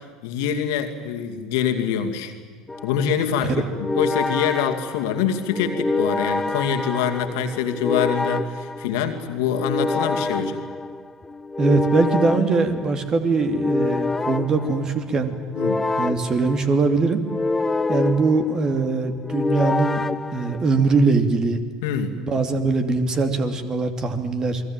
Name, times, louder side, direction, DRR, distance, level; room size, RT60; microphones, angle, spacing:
voice 1, 0.2-2.3 2.8-3.6 3.9-10.6 15.6-15.8 21.8-22.1, left 8 dB, 65° left, 5 dB, 2.4 m, -25 dB
sound 1, 2.7-21.1, left 3 dB, 15° left, 0.9 m, -27 dB
voice 2, 11.6-15.3 16.0-17.2 17.9-20.0 20.3-21.6 22.2-24.6, right 4 dB, 30° right, 8 dB, 2.7 m, -21 dB
29.0 x 21.5 x 9.0 m, 1.5 s
figure-of-eight pair, 70°, 2 cm